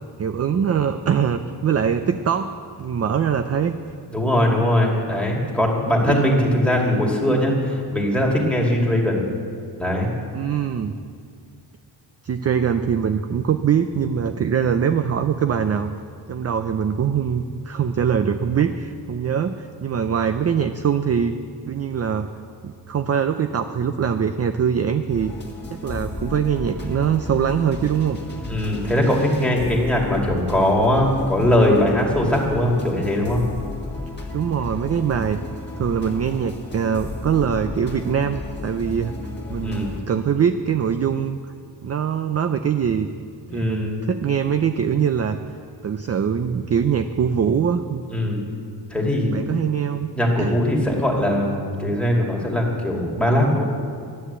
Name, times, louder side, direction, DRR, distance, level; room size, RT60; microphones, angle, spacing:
voice 1, 0.2-2.5 2.8-3.8 6.1-6.3 10.3-10.9 12.2-15.9 16.3-21.3 21.7-22.3 22.6-25.3 25.7-28.2 28.8-29.0 34.3-35.4 35.8-39.1 39.5-41.4 41.8-43.1 43.5-45.4 45.8-48.0 49.3-50.1 50.4-50.6, right 7 dB, 35° right, 8 dB, 0.4 m, -22 dB
voice 2, 4.1-9.3 9.8-10.1 28.5-33.4 39.6-39.9 43.5-44.0 48.1-48.4 48.9-49.3 50.2-53.6, left 1 dB, 5° left, -2 dB, 2.3 m, -20 dB
sound 1, 25.1-40.0, left 2 dB, 25° left, 2.0 m, -33 dB
13.0 x 10.0 x 8.1 m, 2.3 s
wide cardioid pair, 175°, 43 cm